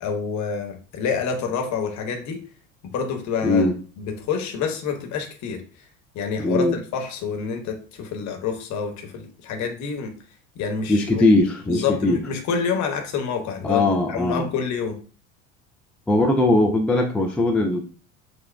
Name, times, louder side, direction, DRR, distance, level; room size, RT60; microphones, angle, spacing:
voice 1, 0.0-2.4 2.9-3.7 4.0-5.6 6.1-10.1 10.6-11.2 11.7-15.0, left 6 dB, 45° left, 4 dB, 1.0 m, -27 dB
voice 2, 3.4-3.8 6.4-6.8 10.9-12.2 13.6-14.5 16.1-17.8, left 2 dB, 5° left, 2 dB, 0.3 m, -20 dB
6.4 x 2.2 x 2.3 m, 0.39 s
figure-of-eight pair, 70°, 40 cm